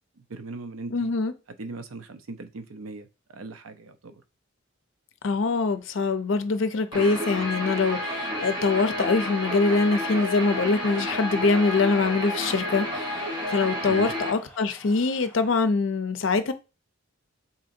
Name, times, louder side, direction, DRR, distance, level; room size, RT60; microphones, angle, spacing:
voice 1, 0.2-1.1 1.6-4.2 13.9-14.1, right 3 dB, 90° right, 0.5 m, -39 dB
voice 2, 0.9-1.3 5.2-16.5, left 4 dB, 70° left, 0.5 m, -24 dB
sound 1, 5.7-15.6, equal, 10° left, 1.5 m, -48 dB
Guitar, 6.9-14.3, equal, 20° right, 1.0 m, -30 dB
4.2 x 3.8 x 2.6 m
head